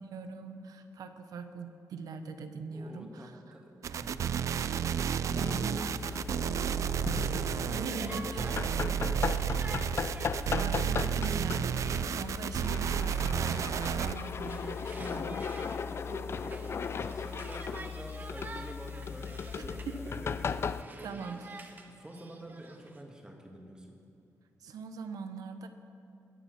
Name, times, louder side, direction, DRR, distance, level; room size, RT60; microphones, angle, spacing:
voice 1, 0.0-3.6 5.3-5.9 7.6-8.5 10.6-15.4 19.9-20.2 21.0-21.6 24.6-25.7, right 4 dB, 80° right, 8 dB, 1.0 m, -42 dB
voice 2, 2.7-3.7 4.0-4.3 4.8-9.8 15.7-21.3 21.6-24.0, right 1 dB, 15° right, 1 dB, 1.7 m, -46 dB
sound 1, 3.8-14.1, right 8 dB, 55° right, 0.3 m, -32 dB
sound 2, 5.3-20.8, left 6 dB, 40° left, 0.4 m, -37 dB
Conversation, 7.2-20.0 20.4-23.0, right 3 dB, 30° right, 1.0 m, -50 dB
21.5 x 7.3 x 5.9 m, 2.7 s
wide cardioid pair, 130°, 6 cm